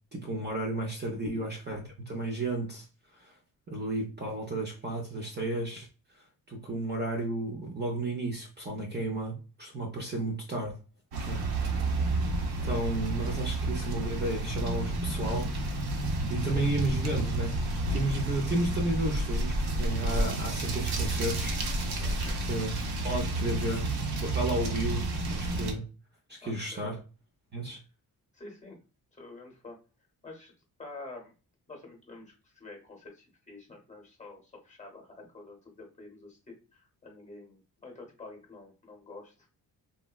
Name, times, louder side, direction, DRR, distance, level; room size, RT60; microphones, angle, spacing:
voice 1, 0.1-2.9 3.1-3.3 3.7-5.9 6.5-10.8 11.3-11.4 12.6-15.8 16.3-17.6 17.9-21.6 22.5-22.7 23.0-23.9 24.2-25.8 26.3-27.0 27.5-27.8, right 2 dB, 30° right, 0.4 m, -33 dB
sound 1, 11.1-25.7, right 2 dB, 80° right, 0.7 m, -30 dB
voice 2, 11.6-11.9 21.9-22.4 26.4-26.9 27.7-27.8 28.3-28.8 29.1-29.8 30.2-30.5 30.8-31.3 31.7-39.5, left 2 dB, 20° left, 0.8 m, -48 dB
3.7 x 2.1 x 2.2 m
wide cardioid pair, 175°, 37 cm